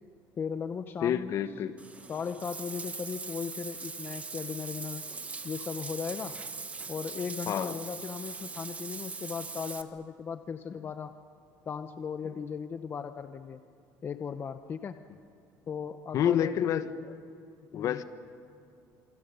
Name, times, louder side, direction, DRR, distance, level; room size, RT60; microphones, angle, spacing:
voice 1, 0.4-1.3 2.1-5.1 5.4-6.4 6.9-11.2 11.7-13.6 14.0-15.0 15.7-16.5 17.7-18.0, left 6 dB, 30° left, 9 dB, 0.8 m, -37 dB
voice 2, 1.0-1.7 7.5-7.7 16.1-16.9 17.7-18.0, left 9 dB, 50° left, 11 dB, 1.2 m, -28 dB
Bathtub (filling or washing), 1.8-9.8, right 4 dB, 20° right, 1.2 m, -41 dB
28.0 x 25.5 x 7.0 m, 2.4 s
cardioid pair, 135°, 7 cm